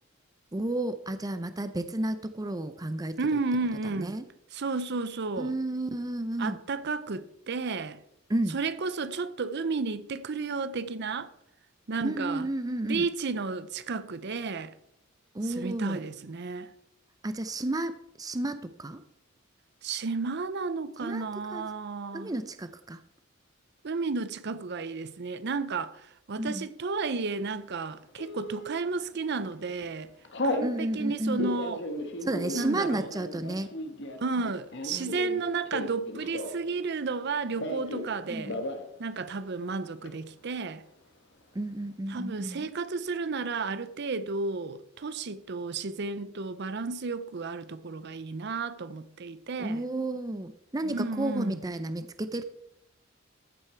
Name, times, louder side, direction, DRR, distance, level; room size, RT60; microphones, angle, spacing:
voice 1, 0.5-3.2 3.8-4.3 5.4-6.6 8.3-8.6 12.0-13.1 15.3-16.0 17.2-19.0 21.0-21.2 21.5-21.6 22.1-23.0 26.4-26.7 30.6-31.5 32.2-33.7 34.9-35.1 37.9-38.6 41.5-42.7 49.6-52.4, right 1 dB, 20° right, 0.5 m, -32 dB
voice 2, 3.2-4.2 4.5-5.5 6.4-8.0 8.5-11.3 11.9-12.5 12.8-14.7 15.4-16.7 19.8-22.3 23.8-26.0 26.3-30.1 30.4-31.8 32.5-33.1 34.2-38.6 39.0-40.8 42.1-49.8 50.8-51.6, right 4 dB, 55° right, 0.6 m, -32 dB
Telephone, 28.2-28.7 29.3-29.5 29.8-30.7 31.2-36.7 37.0-38.1 38.4-38.9 39.2-39.3 39.5-40.1, left 1 dB, 60° left, 1.5 m, -35 dB
14.0 x 8.1 x 4.4 m
head